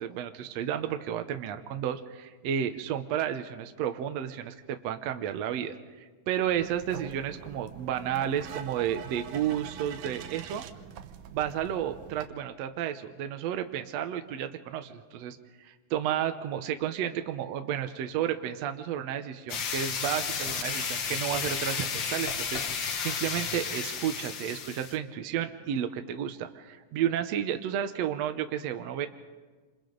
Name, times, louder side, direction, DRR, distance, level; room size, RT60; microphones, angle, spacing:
voice 1, 0.0-10.6 11.3-29.1, right 10 dB, 70° right, 7 dB, 2.0 m, -32 dB
sound 1, 6.4-12.3, right 9 dB, 90° right, 2.5 m, -44 dB
sound 2, 19.5-25.0, left 6 dB, 50° left, 1.6 m, -32 dB
28.5 x 27.0 x 3.9 m, 1.4 s
omnidirectional pair, 3.3 m